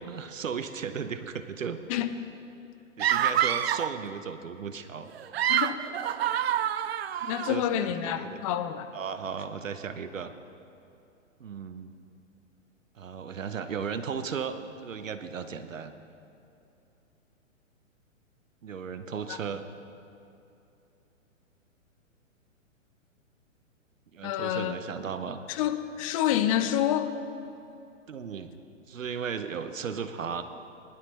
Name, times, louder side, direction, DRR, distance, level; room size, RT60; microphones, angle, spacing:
voice 1, 0.0-1.8 3.0-5.1 7.2-8.4 8.9-10.3 11.4-12.0 13.0-15.9 18.6-19.6 24.1-25.4 28.1-28.6 28.9-30.4, right 6 dB, 75° right, 10 dB, 0.9 m, -36 dB
sound 1, 3.0-4.0 5.1-7.5, right 10 dB, 50° right, 0.5 m, -27 dB
voice 2, 7.3-8.9 19.3-19.4 24.2-24.7 25.5-27.1, left 11 dB, 25° left, 10 dB, 0.6 m, -28 dB
19.5 x 12.0 x 3.3 m, 2.8 s
figure-of-eight pair, 120°, 39 cm